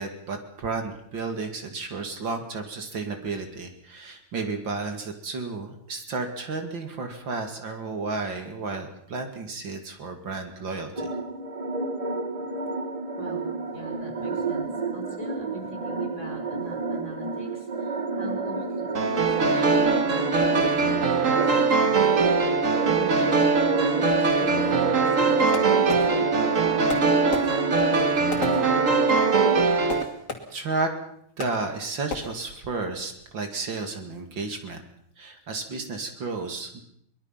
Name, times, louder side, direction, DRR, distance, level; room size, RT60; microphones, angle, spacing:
voice 1, 0.0-11.1 30.5-30.9 31.4-34.8 35.2-36.8, right 3 dB, 65° right, 5 dB, 3.0 m, -32 dB
sound 1, 11.0-29.6, right 3 dB, 25° right, 0.8 m, -30 dB
voice 2, 13.2-13.5 13.7-22.2 22.8-26.1, left 1 dB, 35° left, 3 dB, 5.7 m, -41 dB
sound 2, 19.0-30.0, right 4 dB, 40° right, 1.9 m, -22 dB
Fireworks, 25.5-26.6 26.9-29.3 29.9-30.8 31.4-31.8 32.1-32.6, left 4 dB, 50° left, 3.2 m, -36 dB
23.5 x 21.0 x 5.8 m, 0.71 s
omnidirectional pair, 2.2 m